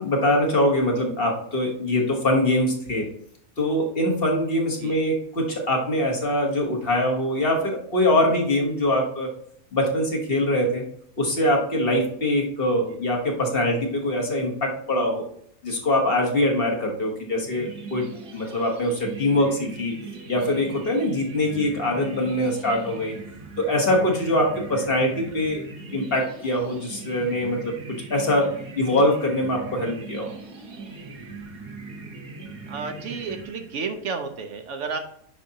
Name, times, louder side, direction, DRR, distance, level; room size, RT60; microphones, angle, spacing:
voice 1, 0.0-3.1 3.6-9.3 9.7-10.8 11.2-15.2 15.6-18.0 18.3-19.9 20.3-23.1 23.6-25.6 25.9-27.7 28.1-28.5 28.8-30.3, left 1 dB, 45° left, 0 dB, 1.4 m, -23 dB
sound 1, 17.4-34.0, right 4 dB, 45° right, 1.2 m, -40 dB
voice 2, 32.7-35.0, right 5 dB, 65° right, 6 dB, 1.0 m, -32 dB
9.7 x 5.2 x 2.8 m, 0.66 s
omnidirectional pair, 1.4 m